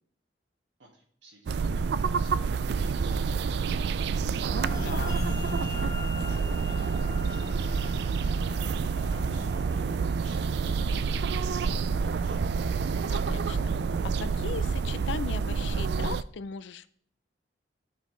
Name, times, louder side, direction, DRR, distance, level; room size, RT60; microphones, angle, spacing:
voice 1, 0.8-4.3 4.6-8.5 8.8-12.6, right 2 dB, 90° right, 1 dB, 2.0 m, -53 dB
sound 1, 1.5-16.2, right 5 dB, 65° right, 0.3 m, -28 dB
sound 2, 4.5-15.1, left 3 dB, 20° left, 1.6 m, -42 dB
voice 2, 4.8-5.2 13.1-13.7 14.0-16.9, left 6 dB, 80° left, 15 dB, 0.4 m, -38 dB
13.0 x 4.9 x 3.3 m, 0.63 s
head